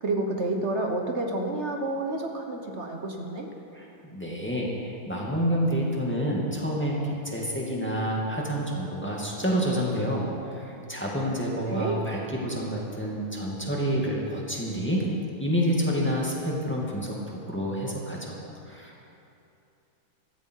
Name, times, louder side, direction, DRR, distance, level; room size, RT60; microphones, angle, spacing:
voice 1, 0.0-3.5 11.7-12.0, right 2 dB, 45° right, 2 dB, 1.3 m, -29 dB
voice 2, 3.7-7.0 7.2-15.0 15.4-18.4 18.7-19.0, equal, 5° left, -3 dB, 2.1 m, -28 dB
15.5 x 14.0 x 4.7 m, 2.7 s
omnidirectional pair, 1.8 m